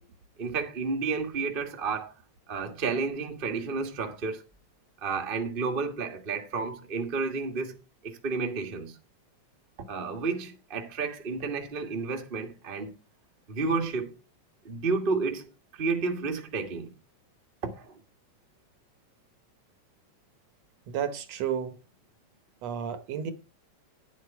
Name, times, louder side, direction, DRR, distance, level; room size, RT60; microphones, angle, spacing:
voice 1, 0.4-2.1 2.5-4.4 5.0-7.8 8.0-9.0 9.9-12.9 13.5-14.2 14.6-16.9 17.6-18.0, right 4 dB, 35° right, 0.9 m, -31 dB
voice 2, 20.9-21.8 22.6-23.3, right 8 dB, 65° right, 2.0 m, -32 dB
10.5 x 8.3 x 4.6 m
omnidirectional pair, 3.4 m